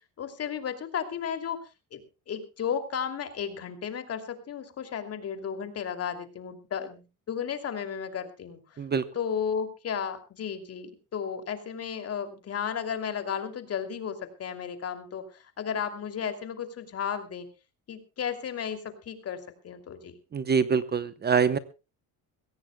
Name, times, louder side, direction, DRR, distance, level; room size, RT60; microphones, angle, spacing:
voice 1, 0.2-1.6 1.9-2.0 2.3-8.8 9.1-17.5 17.9-20.1, left 7 dB, 45° left, 8 dB, 2.8 m, -34 dB
voice 2, 20.3-21.6, right 6 dB, 30° right, 14 dB, 0.8 m, -24 dB
23.0 x 16.5 x 2.2 m, 0.30 s
cardioid pair, 135°, 35 cm